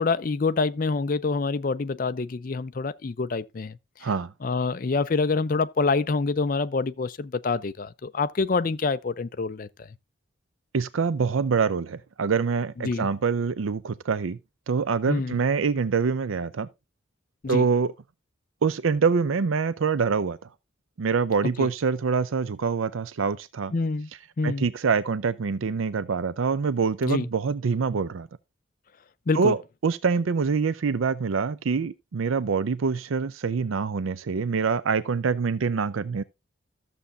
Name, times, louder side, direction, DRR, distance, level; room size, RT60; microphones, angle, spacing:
voice 1, 0.0-4.1 4.4-9.9 12.8-13.1 15.1-15.4 17.4-17.6 21.6-21.7 23.7-24.1 24.4-24.7 27.0-27.3 29.3-29.5, left 4 dB, 45° left, 0.4 m, -26 dB
voice 2, 4.0-4.3 10.7-14.4 14.7-16.7 17.5-17.9 18.6-20.4 21.0-23.7 24.4-28.3 29.3-36.2, right 5 dB, 85° right, 0.5 m, -25 dB
13.5 x 7.0 x 2.5 m
head